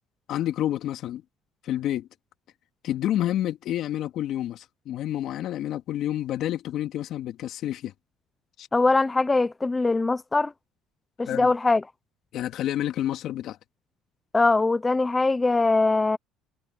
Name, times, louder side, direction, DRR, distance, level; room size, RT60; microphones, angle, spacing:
voice 1, 0.3-1.2 1.6-2.1 2.8-7.9 8.6-8.7 11.3-11.5 12.3-13.6, left 12 dB, 60° left, 2.5 m, -29 dB
voice 2, 8.7-10.5 11.2-11.8 14.3-16.2, left 3 dB, 15° left, 0.6 m, -22 dB
supercardioid pair, 100°, 0 cm